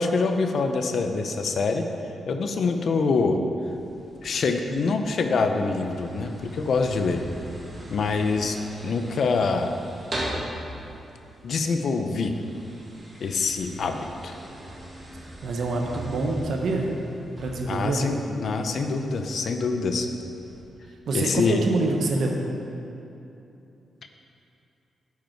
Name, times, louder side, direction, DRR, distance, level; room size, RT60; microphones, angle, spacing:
voice 1, 0.0-1.9 2.3-3.4 4.2-7.2 7.9-8.6 8.8-9.7 11.4-12.3 13.2-14.3 17.7-20.1 21.1-21.6, left 4 dB, 50° left, 6 dB, 0.6 m, -25 dB
sound 1, 3.6-20.6, right 1 dB, 20° right, 2.1 m, -41 dB
voice 2, 15.4-16.9 17.4-18.0 21.1-22.4, right 3 dB, 60° right, 1 dB, 0.9 m, -26 dB
12.0 x 5.2 x 4.5 m, 2.8 s
wide cardioid pair, 170°, 0 cm